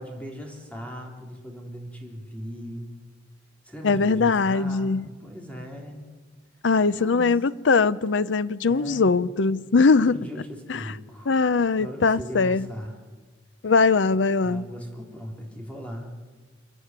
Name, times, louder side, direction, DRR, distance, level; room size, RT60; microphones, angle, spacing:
voice 1, 0.0-2.9 3.6-6.0 6.9-7.3 8.7-9.1 9.9-11.3 11.7-13.0 14.4-16.1, equal, 5° left, 3.7 m, -38 dB
voice 2, 3.8-5.1 6.6-10.2 10.7-10.9 11.3-12.7 13.6-14.6, left 4 dB, 70° left, 0.6 m, -21 dB
29.0 x 11.0 x 9.7 m
head